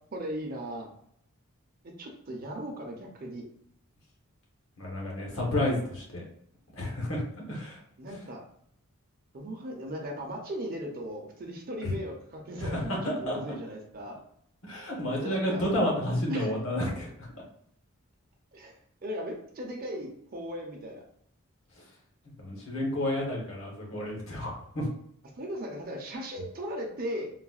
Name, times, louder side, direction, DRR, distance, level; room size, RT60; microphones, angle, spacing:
voice 1, 0.1-0.9 2.0-3.4 8.0-8.4 9.3-14.2 15.2-15.7 16.3-16.5 18.5-21.0 25.3-27.3, equal, 40° right, 1 dB, 0.5 m, -37 dB
voice 2, 4.8-6.2 6.7-7.2 7.5-7.8 11.8-11.9 12.6-13.4 14.6-17.1 22.4-24.9, left 1 dB, 65° left, -2 dB, 1.0 m, -30 dB
3.9 x 2.1 x 2.3 m, 0.67 s
head